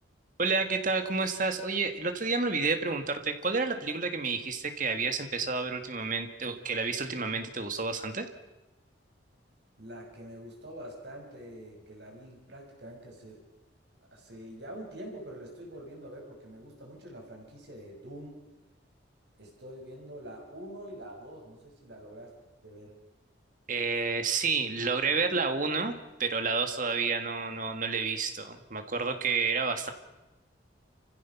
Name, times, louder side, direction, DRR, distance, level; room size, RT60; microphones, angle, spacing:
voice 1, 0.4-8.3 23.7-25.9 26.2-29.9, right 4 dB, 45° right, 7 dB, 1.8 m, -30 dB
voice 2, 9.8-13.4 14.0-18.4 19.4-22.3 22.6-23.0, right 1 dB, 60° right, 0 dB, 6.0 m, -45 dB
29.5 x 15.5 x 5.9 m, 1.0 s
head